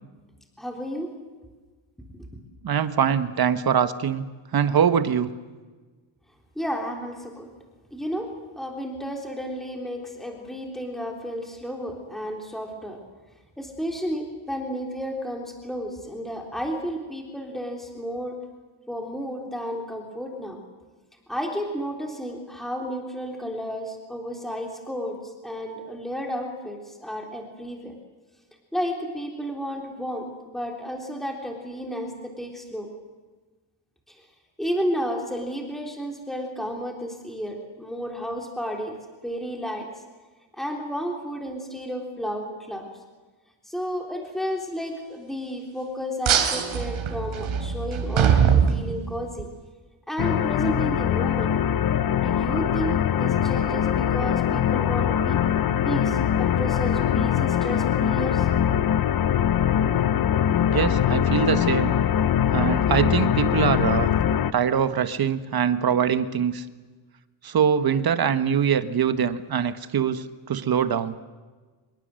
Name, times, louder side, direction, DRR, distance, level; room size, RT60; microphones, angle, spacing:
voice 1, 0.6-1.1 6.6-7.5 7.9-13.0 13.6-18.4 18.9-20.6 21.3-25.2 25.4-27.9 28.7-32.9 34.6-38.9 39.2-39.9 40.6-42.8 43.7-49.5 50.1-51.5 52.2-58.5 59.9-60.0, equal, ahead, 1 dB, 3.6 m, -32 dB
voice 2, 2.6-4.2 4.5-5.3 60.7-61.9 62.5-64.1 64.5-66.6 67.4-71.2, right 8 dB, 50° right, 11 dB, 1.5 m, -23 dB
sound 1, 46.2-49.4, right 7 dB, 75° right, 3.6 m, -22 dB
sound 2, 50.2-64.5, left 9 dB, 45° left, 0.8 m, -22 dB
26.5 x 22.0 x 7.8 m, 1.3 s
wide cardioid pair, 160°, 48 cm